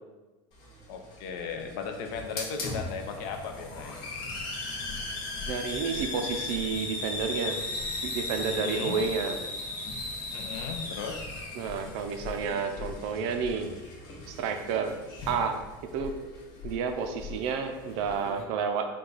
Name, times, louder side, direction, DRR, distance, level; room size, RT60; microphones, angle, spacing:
Hiss, 0.5-18.4, left 3 dB, 35° left, 0.9 m, -38 dB
voice 1, 0.9-3.9 8.5-9.0 10.3-11.3, left 6 dB, 50° left, 5 dB, 0.5 m, -36 dB
voice 2, 5.5-7.6 8.0-9.4 11.5-13.7 14.3-14.9 15.3-15.6 15.9-16.1 16.6-18.9, right 6 dB, 45° right, 6 dB, 0.4 m, -30 dB
4.5 x 2.2 x 3.9 m, 1.2 s
supercardioid pair, 170°, 13 cm